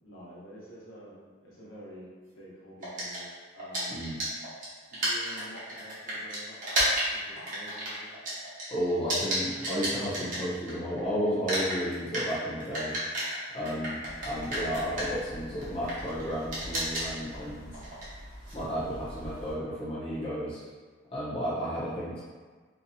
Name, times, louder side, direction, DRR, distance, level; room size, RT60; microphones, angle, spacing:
voice 1, 0.0-2.1 2.3-3.3 3.5-3.9 4.9-6.6 7.1-8.2, equal, 85° left, -8 dB, 0.9 m, -48 dB
sound 1, 2.8-11.0 11.3-19.5, right 1 dB, 40° right, 0.8 m, -33 dB
voice 2, 3.9-4.2 8.7-13.0 13.5-17.7 18.5-20.6 21.1-22.2, equal, 30° left, -9 dB, 0.6 m, -32 dB
2.6 x 2.2 x 2.5 m, 1.5 s
head